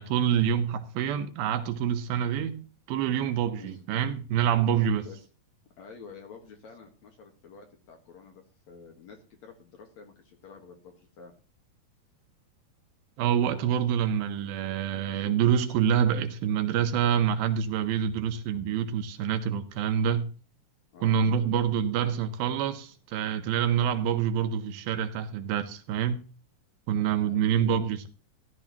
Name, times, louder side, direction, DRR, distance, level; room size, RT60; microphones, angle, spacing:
voice 1, 0.0-5.1 13.2-20.3 21.0-26.2 26.9-28.1, right 8 dB, 80° right, 2.6 m, -26 dB
voice 2, 3.6-3.9 5.0-5.2 5.8-11.3 20.9-21.3 27.2-27.6, left 5 dB, 60° left, 2.3 m, -49 dB
14.5 x 11.5 x 2.9 m
omnidirectional pair, 4.4 m